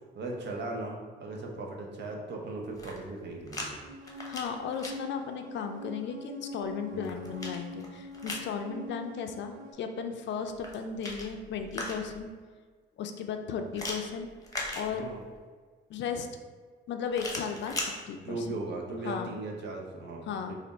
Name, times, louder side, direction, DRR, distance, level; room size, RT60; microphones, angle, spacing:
voice 1, 0.1-3.8 6.9-7.1 14.9-15.2 18.1-20.6, right 2 dB, 60° right, 0 dB, 0.8 m, -38 dB
sound 1, 2.6-3.7 4.0-4.9 6.6-8.5 10.5-12.3 13.7-15.3 17.1-17.9, left 2 dB, 15° left, 0.8 m, -39 dB
sound 2, 3.8-9.7, left 2 dB, 85° right, 0.5 m, -44 dB
voice 2, 4.3-12.3 13.0-14.3 14.7-15.1 15.9-16.3 16.9-18.6 19.0-19.3 20.3-20.6, left 6 dB, 65° left, 6 dB, 0.4 m, -35 dB
3.4 x 2.5 x 4.0 m, 1.5 s
cardioid pair, 90°, 20 cm